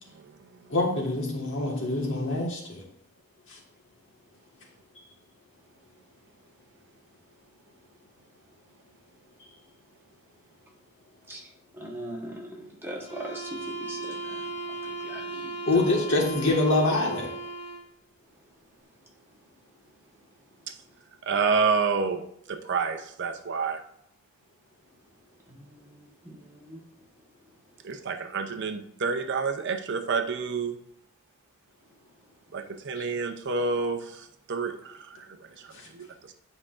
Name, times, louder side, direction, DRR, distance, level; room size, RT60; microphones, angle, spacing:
voice 1, 0.7-2.8 3.5-3.6 15.7-17.3 33.0-33.1 35.7-35.8, left 2 dB, 65° left, 1.6 m, -25 dB
voice 2, 11.7-15.6 25.5-26.8, right 1 dB, 10° right, 1.2 m, -41 dB
sound 1, 13.0-18.0, right 2 dB, 30° left, 1.0 m, -36 dB
voice 3, 21.3-22.2 22.5-23.8 27.8-30.8 32.5-35.2 35.6-36.0, right 5 dB, 55° right, 0.6 m, -28 dB
9.7 x 4.9 x 2.5 m
head